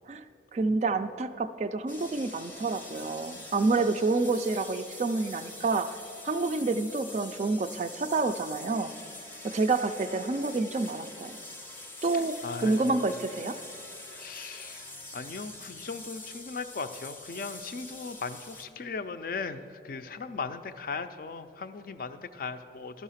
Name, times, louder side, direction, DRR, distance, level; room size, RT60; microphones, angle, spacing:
voice 1, 0.5-6.0 6.2-8.9 9.4-11.4 12.0-13.6, right 3 dB, 40° right, 11 dB, 0.3 m, -28 dB
sound 1, 1.9-18.6, left 2 dB, 10° left, 0.6 m, -45 dB
voice 2, 12.4-12.8 14.1-14.9 15.1-23.0, left 4 dB, 50° left, 10 dB, 0.4 m, -38 dB
12.5 x 5.6 x 5.7 m, 2.6 s
head